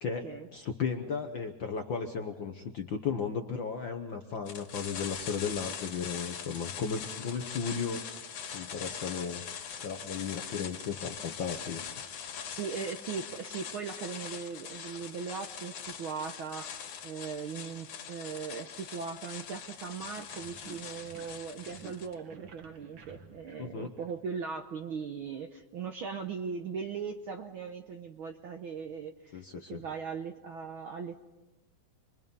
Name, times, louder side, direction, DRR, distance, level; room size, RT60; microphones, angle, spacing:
voice 1, 0.0-8.0 8.5-9.4 9.8-11.8 23.6-23.9 29.3-29.8, left 6 dB, 60° left, 5 dB, 1.3 m, -35 dB
sound 1, 4.5-22.1, left 7 dB, 90° left, 3.6 m, -42 dB
voice 2, 12.6-31.2, right 6 dB, 65° right, 5 dB, 1.3 m, -39 dB
sound 2, 20.0-24.6, right 4 dB, 50° right, 1.9 m, -53 dB
28.0 x 23.0 x 5.5 m, 1.0 s
omnidirectional pair, 3.4 m